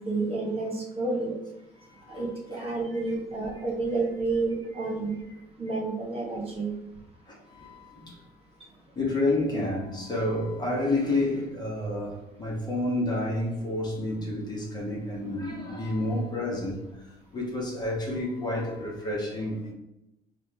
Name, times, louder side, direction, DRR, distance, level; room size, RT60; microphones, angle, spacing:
voice 1, 0.0-1.4 2.1-5.1 5.6-6.7, right 3 dB, 35° right, -2 dB, 1.5 m, -30 dB
voice 2, 1.9-2.7 4.8-4.9 7.3-8.2 8.9-17.0 17.3-19.7, left 2 dB, 25° left, -3 dB, 1.3 m, -30 dB
5.1 x 2.5 x 3.5 m, 0.90 s
cardioid pair, 110°, 17 cm